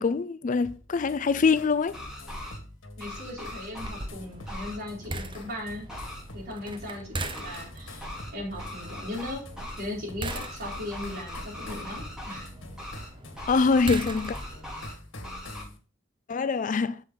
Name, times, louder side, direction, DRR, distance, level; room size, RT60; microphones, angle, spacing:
voice 1, 0.0-2.0 13.5-14.4 16.3-17.0, left 4 dB, 40° left, 0.4 m, -24 dB
sound 1, 0.6-15.8, left 1 dB, 85° left, 1.6 m, -47 dB
sound 2, 1.8-2.6 3.0-4.0 4.4-4.8 5.9-6.2 7.3-7.6 8.0-8.3 8.6-9.8 10.3-12.5 12.8-13.1 13.3-14.9 15.2-15.6, left 1 dB, 5° right, 4.4 m, -40 dB
voice 2, 3.0-5.9 6.3-9.4 9.8-12.5, left 1 dB, 55° right, 4.7 m, -38 dB
sound 3, 3.8-14.7, right 2 dB, 25° right, 0.9 m, -40 dB
7.8 x 7.2 x 4.0 m
head